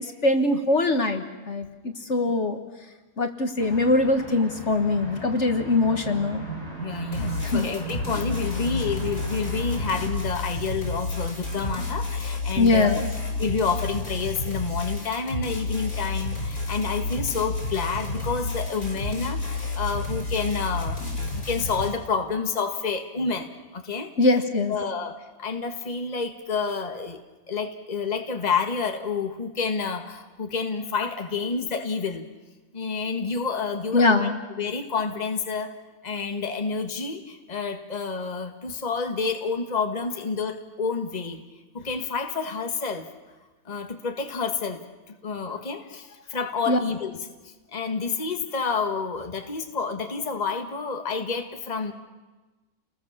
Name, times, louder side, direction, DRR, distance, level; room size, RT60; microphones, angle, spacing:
voice 1, 0.0-1.7 2.1-2.6 3.2-6.5 7.2-7.7 12.6-13.1 24.2-24.7 33.9-34.4 46.7-46.8, left 2 dB, 50° left, 6 dB, 1.8 m, -22 dB
sound 1, 3.6-10.1, right 3 dB, 45° right, 6.6 m, -37 dB
voice 2, 6.8-13.0 13.4-24.1 24.7-27.2 27.5-32.3 32.7-34.3 34.6-35.8 36.0-41.4 41.7-43.1 43.6-51.9, left 5 dB, 30° left, 5 dB, 1.6 m, -29 dB
sound 2, 7.1-21.9, left 3 dB, 75° left, 6.7 m, -30 dB
30.0 x 20.5 x 7.3 m, 1.2 s
omnidirectional pair, 1.5 m